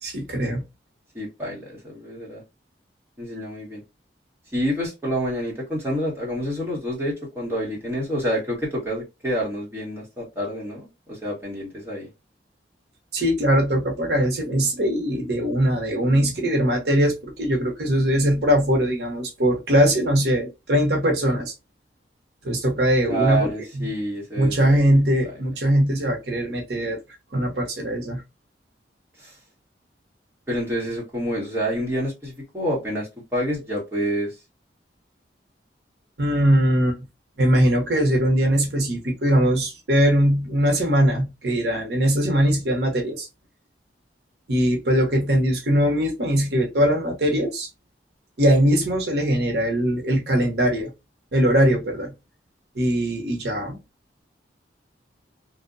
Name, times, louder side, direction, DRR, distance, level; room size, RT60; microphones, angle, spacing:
voice 1, 0.0-0.6 13.1-21.5 22.4-23.9 24.4-27.0 27.3-28.2 36.2-37.1 37.4-43.3 44.5-47.7 48.4-50.9 51.3-52.1 52.7-53.8, equal, 65° right, 0.7 m, -21 dB
voice 2, 1.1-2.4 3.2-3.8 4.5-12.1 23.1-25.0 29.2-29.3 30.5-34.3, equal, 15° right, 1.0 m, -28 dB
2.6 x 2.1 x 2.4 m
head